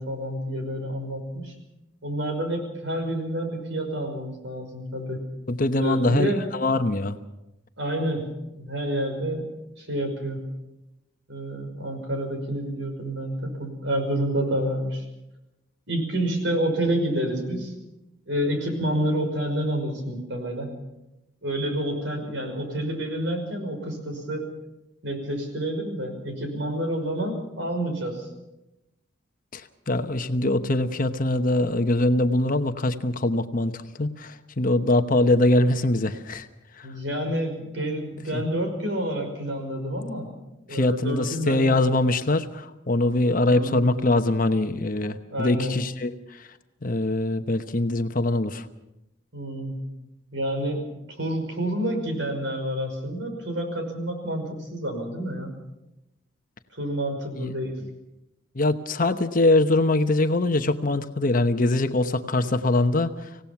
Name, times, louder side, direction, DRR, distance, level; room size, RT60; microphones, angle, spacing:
voice 1, 0.0-1.5 2.0-5.2 5.8-6.4 7.8-8.3 8.5-9.5 9.8-10.4 11.3-15.0 15.9-17.8 18.3-20.7 21.4-24.5 25.0-28.3 36.8-40.3 40.7-41.6 43.5-44.0 45.3-45.7 49.3-49.8 50.3-50.9 51.2-55.5 56.7-57.7, right 1 dB, 65° right, 4 dB, 5.6 m, -28 dB
voice 2, 5.5-7.2 29.5-36.5 36.8-36.9 38.3-38.4 40.7-46.1 46.8-48.6 57.3-57.5 58.6-63.1, left 2 dB, 45° left, 8 dB, 1.0 m, -23 dB
26.0 x 17.5 x 5.9 m, 0.92 s
head